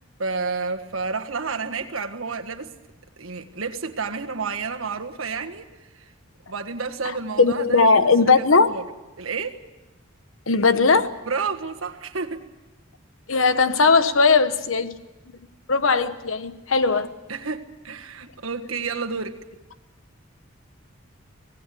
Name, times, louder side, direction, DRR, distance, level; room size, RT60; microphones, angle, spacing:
voice 1, 0.2-2.7 3.2-5.7 5.9-6.1 6.5-8.9 9.2-9.6 11.3-12.4 17.3-19.4, right 4 dB, 80° right, 4 dB, 1.6 m, -30 dB
voice 2, 7.4-8.7 10.5-11.1 13.3-15.0 15.7-17.1, left 4 dB, 75° left, 11 dB, 1.2 m, -18 dB
24.5 x 18.5 x 8.5 m, 1.1 s
head